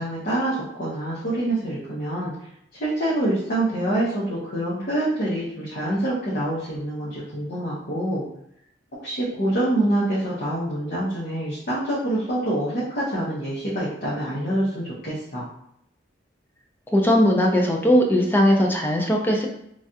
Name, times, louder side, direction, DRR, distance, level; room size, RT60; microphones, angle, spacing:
voice 1, 0.0-2.3 2.8-8.3 8.9-15.5, right 1 dB, 55° left, -8 dB, 0.8 m, -26 dB
voice 2, 16.9-19.5, equal, 10° left, 0 dB, 0.4 m, -19 dB
3.1 x 2.3 x 2.7 m, 0.74 s
head